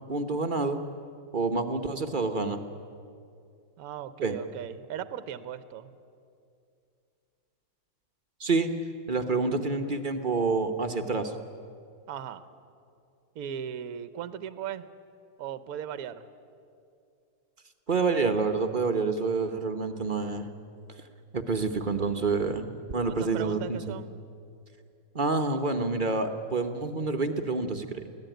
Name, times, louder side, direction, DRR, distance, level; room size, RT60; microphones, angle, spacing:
voice 1, 0.1-0.8 1.3-2.6 4.2-4.4 8.4-8.7 9.1-11.3 17.9-20.5 21.3-24.0 25.1-28.1, right 3 dB, 35° right, 6 dB, 0.8 m, -28 dB
voice 2, 3.8-5.9 12.1-12.5 13.3-14.9 15.4-16.3 23.1-24.2, right 9 dB, 60° right, 12 dB, 1.2 m, -37 dB
24.0 x 16.5 x 9.1 m, 2.5 s
omnidirectional pair, 2.0 m